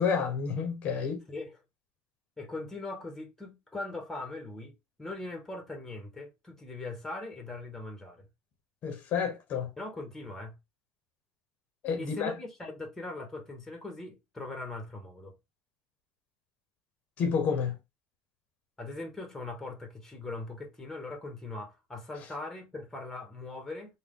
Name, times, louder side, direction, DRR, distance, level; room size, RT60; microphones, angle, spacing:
voice 1, 0.0-1.2 8.8-9.7 11.8-12.3 17.2-17.8, left 6 dB, 50° left, 0.8 m, -29 dB
voice 2, 2.4-8.3 9.8-10.6 12.0-15.3 18.8-24.0, left 2 dB, 10° left, 1.1 m, -40 dB
3.4 x 2.3 x 3.6 m
cardioid pair, 125°, 3 cm